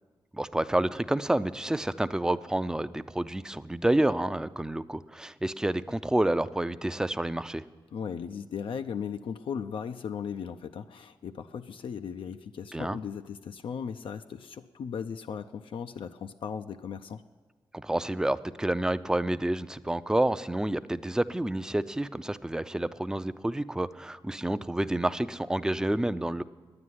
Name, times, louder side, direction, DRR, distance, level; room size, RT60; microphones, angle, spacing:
voice 1, 0.3-7.6 12.7-13.0 17.7-26.4, right 1 dB, 5° right, 13 dB, 0.4 m, -29 dB
voice 2, 7.9-17.2, left 7 dB, 75° left, 8 dB, 0.4 m, -37 dB
9.8 x 9.5 x 9.3 m, 1.4 s
cardioid pair, 80°, 9 cm